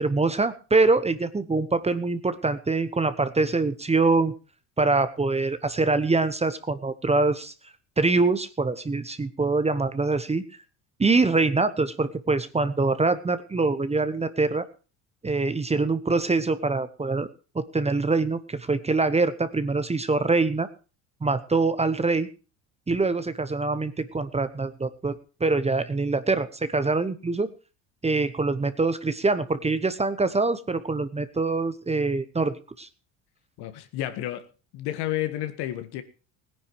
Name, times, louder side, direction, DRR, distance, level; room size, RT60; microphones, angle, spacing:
voice 1, 0.0-4.3 4.8-7.5 8.0-10.4 11.0-14.7 15.2-17.3 17.5-20.7 21.2-22.3 22.9-27.5 28.0-32.9, right 3 dB, 15° right, 13 dB, 1.0 m, -24 dB
voice 2, 33.6-34.5 34.7-36.0, left 13 dB, 70° left, 10 dB, 1.8 m, -31 dB
17.0 x 10.0 x 4.6 m, 0.34 s
supercardioid pair, 90°, 41 cm